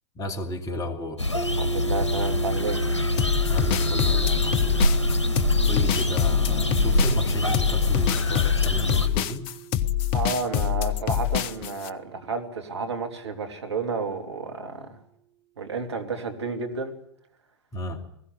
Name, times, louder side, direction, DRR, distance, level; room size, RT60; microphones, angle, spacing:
voice 1, 0.1-1.2 3.5-5.0 5.7-9.5 17.7-18.1, left 1 dB, 25° left, 5 dB, 2.7 m, -34 dB
sound 1, 1.2-9.1, left 1 dB, 85° left, 1.3 m, -24 dB
sound 2, 1.3-13.3, right 13 dB, 45° right, 5.2 m, -38 dB
voice 2, 1.6-2.8 10.1-14.9 15.6-16.9, right 4 dB, 70° right, 5 dB, 3.0 m, -31 dB
sound 3, 3.2-11.9, left 11 dB, 40° left, 1.0 m, -26 dB
20.5 x 16.5 x 9.7 m, 0.74 s
figure-of-eight pair, 95°, 15 cm